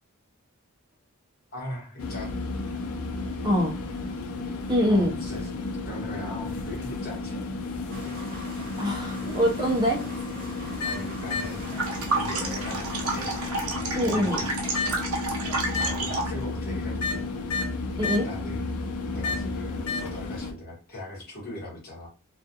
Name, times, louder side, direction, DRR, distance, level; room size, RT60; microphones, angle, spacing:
voice 1, 1.5-2.3 3.4-3.7 4.9-5.5 5.9-7.5 8.0-8.5 10.8-11.7 12.0-13.4 13.6-14.6 15.8-17.2 18.0-18.7 19.1-22.1, left 1 dB, 45° left, -3 dB, 1.1 m, -40 dB
sound 1, 2.0-20.5, left 3 dB, 85° left, 0.5 m, -32 dB
voice 2, 3.4-3.8 4.7-5.1 8.8-10.0 13.9-14.4 18.0-18.3, equal, 20° right, -1 dB, 0.4 m, -24 dB
sound 2, 7.9-13.5, equal, 40° right, 0.8 m, -43 dB
sound 3, 11.6-16.4, right 3 dB, 75° right, 0.6 m, -30 dB
2.3 x 2.3 x 2.6 m, 0.36 s
head